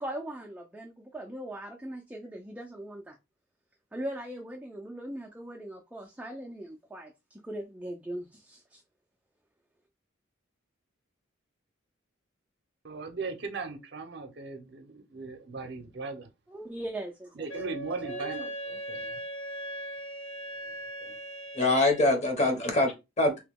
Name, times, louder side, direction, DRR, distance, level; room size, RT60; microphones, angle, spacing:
voice 1, 0.0-3.2 3.9-8.8 16.5-17.5 18.0-18.4, right 1 dB, 5° right, 0.3 m, -40 dB
voice 2, 12.8-16.3 17.4-19.2 21.0-21.2, right 3 dB, 55° right, 0.6 m, -38 dB
Wind instrument woodwind instrument, 17.5-22.2, right 1 dB, 90° left, 0.7 m, -39 dB
voice 3, 21.5-23.4, left 2 dB, 35° left, 0.8 m, -24 dB
2.9 x 2.2 x 3.4 m
head